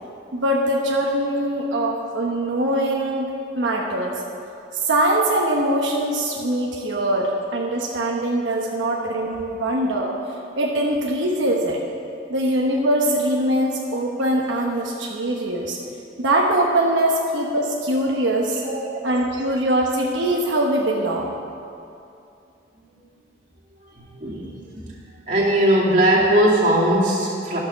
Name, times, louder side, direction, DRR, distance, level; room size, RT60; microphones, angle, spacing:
voice 1, 0.3-3.3 3.5-4.2 4.8-10.1 10.6-11.8 12.3-15.8 16.2-18.6 19.0-21.3, right 1 dB, 85° right, -2 dB, 1.0 m, -22 dB
voice 2, 18.5-18.8 23.9-24.9 25.3-27.6, right 1 dB, 40° right, -6 dB, 2.3 m, -20 dB
12.0 x 6.6 x 6.7 m, 2.6 s
head